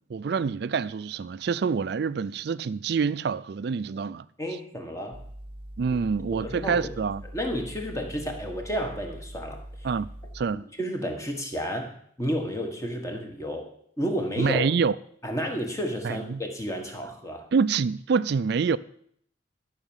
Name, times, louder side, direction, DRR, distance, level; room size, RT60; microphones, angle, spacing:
voice 1, 0.1-4.2 5.8-7.2 9.8-10.6 14.4-14.9 16.0-16.4 17.5-18.8, right 5 dB, 55° right, 0.4 m, -26 dB
voice 2, 4.4-5.2 6.3-6.9 7.3-9.9 10.8-11.9 12.2-13.7 14.0-14.6 15.2-17.4, equal, 15° left, 1.7 m, -31 dB
sound 1, 5.1-10.5, right 1 dB, 25° right, 1.0 m, -42 dB
13.0 x 6.0 x 7.2 m
head